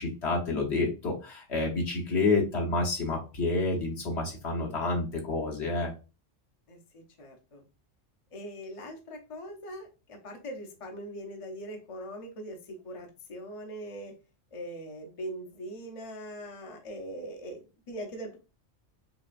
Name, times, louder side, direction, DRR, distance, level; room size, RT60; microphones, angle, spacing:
voice 1, 0.0-5.9, left 3 dB, 60° left, -1 dB, 1.3 m, -29 dB
voice 2, 6.7-7.6 8.3-14.1 14.5-18.4, equal, 35° left, 3 dB, 0.6 m, -41 dB
5.6 x 2.3 x 2.4 m, 0.31 s
omnidirectional pair, 1.3 m